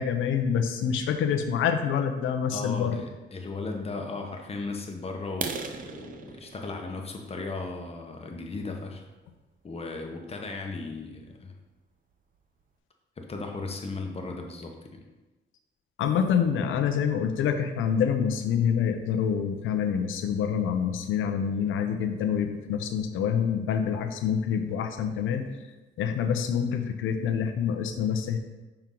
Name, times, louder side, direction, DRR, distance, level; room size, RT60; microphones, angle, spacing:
voice 1, 0.0-3.0 16.0-25.5 26.0-28.4, left 7 dB, 80° left, 6 dB, 0.7 m, -26 dB
voice 2, 2.5-9.0 9.6-11.6 13.2-15.0, left 3 dB, 30° left, 2 dB, 1.0 m, -36 dB
sound 1, 5.3-9.0 9.6-9.8 10.2-10.3 10.8-10.9 11.2-11.3 11.8-11.9 12.1-12.6, right 5 dB, 45° right, 0.6 m, -40 dB
5.8 x 4.4 x 3.8 m, 1.2 s
cardioid pair, 90°, 20 cm